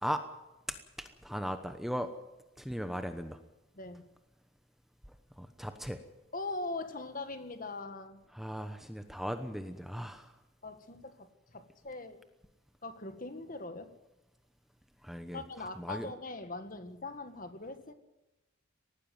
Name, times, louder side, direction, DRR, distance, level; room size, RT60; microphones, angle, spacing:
voice 1, 0.7-2.1 2.6-3.4 5.4-6.0 8.3-10.3 15.0-16.1, equal, ahead, 8 dB, 1.0 m, -38 dB
voice 2, 6.3-8.2 10.6-12.2 12.8-13.9 15.3-17.9, left 2 dB, 40° left, 9 dB, 1.8 m, -41 dB
19.0 x 15.0 x 9.4 m, 0.99 s
head